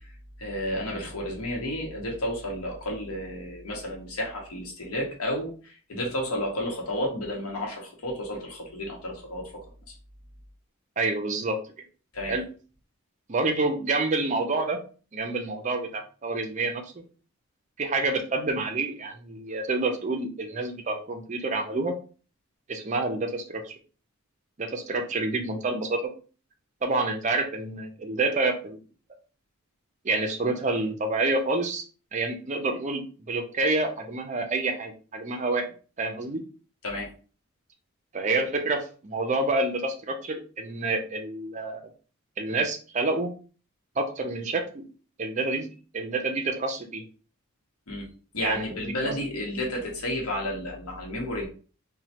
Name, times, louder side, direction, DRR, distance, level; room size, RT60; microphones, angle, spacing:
voice 1, 0.4-9.5 12.1-12.4 36.8-37.1 47.9-48.0 48.3-51.5, left 1 dB, 85° left, -1 dB, 0.9 m, -32 dB
voice 2, 11.0-11.6 12.3-12.5 13.3-14.8 15.1-17.0 17.8-21.9 22.7-23.7 24.6-26.0 26.8-28.8 30.0-31.8 32.1-35.6 36.0-36.4 38.1-41.8 42.4-43.3 44.0-44.8 45.2-45.7 45.9-47.0 48.4-49.1, right 2 dB, 35° right, 5 dB, 0.4 m, -28 dB
3.1 x 2.1 x 2.8 m, 0.38 s
head